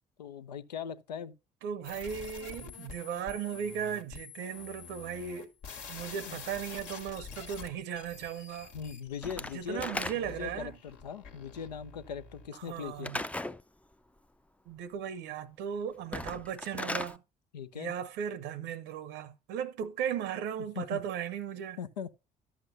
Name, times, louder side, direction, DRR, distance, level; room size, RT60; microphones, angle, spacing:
voice 1, 0.2-1.4 6.2-6.4 8.7-13.1 17.5-17.9 20.8-21.0 21.8-22.2, left 7 dB, 85° left, 0.5 m, -40 dB
voice 2, 1.6-5.5 5.9-8.7 9.5-10.8 12.5-13.2 14.7-17.2 17.7-21.8, right 8 dB, 65° right, 0.7 m, -37 dB
sound 1, 1.8-13.0, left 5 dB, 70° left, 1.5 m, -47 dB
Slam / Wood, 9.2-10.5 13.0-13.6 16.0-17.2, left 1 dB, 5° left, 0.4 m, -36 dB
12.5 x 7.2 x 2.5 m
figure-of-eight pair, 45°, 21 cm